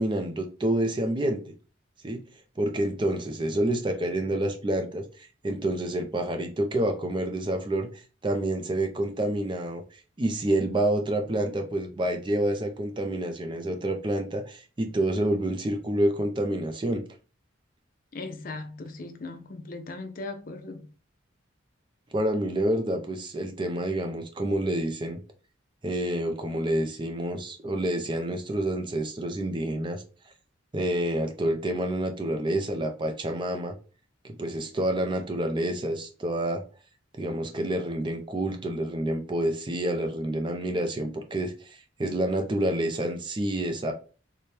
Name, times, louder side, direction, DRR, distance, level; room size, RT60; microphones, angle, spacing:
voice 1, 0.0-1.4 2.0-2.2 2.6-9.8 10.2-17.0 22.1-25.2 25.8-30.0 30.7-33.7 34.2-36.6 37.2-43.9, right 1 dB, 25° right, 0.4 m, -28 dB
voice 2, 18.1-20.9, left 3 dB, 45° left, 0.5 m, -38 dB
4.2 x 2.2 x 3.2 m
head